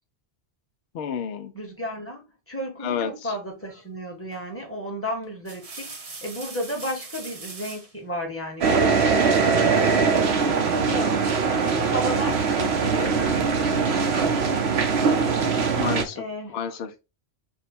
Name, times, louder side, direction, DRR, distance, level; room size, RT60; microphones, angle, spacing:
voice 1, 0.9-1.5 2.8-3.3 15.8-16.2 16.5-17.0, left 7 dB, 70° left, 0.8 m, -30 dB
voice 2, 1.5-9.3 10.7-11.2 11.8-13.2 16.1-16.8, equal, 15° left, 1.1 m, -33 dB
sound 1, 4.3-4.6 5.2-7.9 9.4-10.1, right 3 dB, 40° right, 0.7 m, -41 dB
sound 2, 8.6-16.0, right 5 dB, 70° right, 1.0 m, -21 dB
4.6 x 2.2 x 4.1 m
omnidirectional pair, 1.1 m